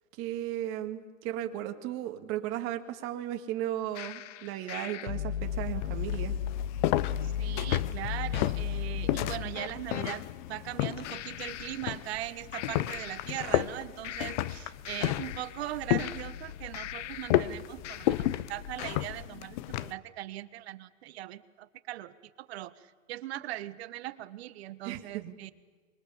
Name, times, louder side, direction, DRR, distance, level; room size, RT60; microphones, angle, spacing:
voice 1, 0.2-6.4 24.8-25.4, right 12 dB, 35° right, 6 dB, 2.1 m, -35 dB
sound 1, 4.0-10.1 11.0-12.3 12.5-13.7 14.0-17.5 17.8-18.5, left 9 dB, 65° left, 0.9 m, -37 dB
sound 2, 5.4-19.9, left 14 dB, 35° left, 0.7 m, -33 dB
voice 2, 7.2-25.5, right 14 dB, 50° right, 14 dB, 1.3 m, -40 dB
25.5 x 22.5 x 7.1 m, 1.5 s
hypercardioid pair, 145°, 39 cm